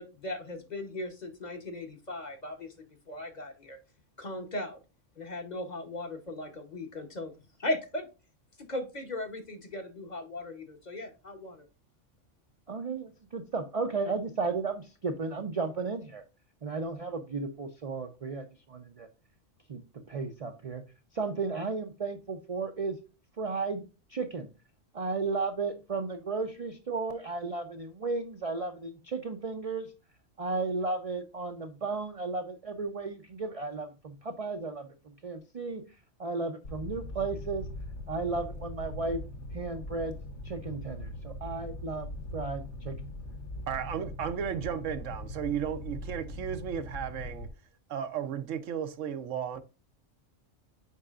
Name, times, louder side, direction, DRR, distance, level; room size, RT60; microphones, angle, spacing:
voice 1, 0.0-2.7 3.1-3.8 4.2-4.8 5.2-7.3 7.6-8.1 8.7-11.6, left 1 dB, 40° left, 1.0 m, -37 dB
voice 2, 12.7-16.2 16.6-19.1 19.7-19.8 20.1-20.8 21.1-23.0 23.4-23.8 24.1-24.5 24.9-29.9 30.4-34.9 35.2-35.8 36.2-37.7 38.1-39.2 39.5-40.2 40.4-42.9, right 4 dB, 40° right, 0.5 m, -34 dB
Fire, 36.6-47.5, left 1 dB, 70° left, 1.2 m, -41 dB
voice 3, 43.7-47.5 47.9-49.6, right 8 dB, 80° right, 1.1 m, -34 dB
8.3 x 4.8 x 2.4 m
omnidirectional pair, 1.3 m